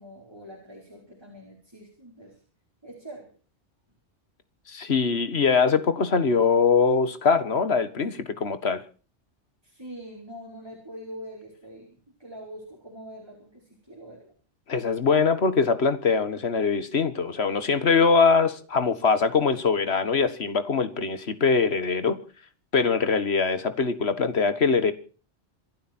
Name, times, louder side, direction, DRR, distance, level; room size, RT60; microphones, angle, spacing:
voice 1, 0.0-2.4 2.8-3.3 9.6-14.3, equal, 20° right, 4.6 m, -44 dB
voice 2, 4.7-8.8 14.7-22.2 22.7-24.9, left 5 dB, 65° left, 1.9 m, -22 dB
27.0 x 11.5 x 4.4 m
omnidirectional pair, 1.2 m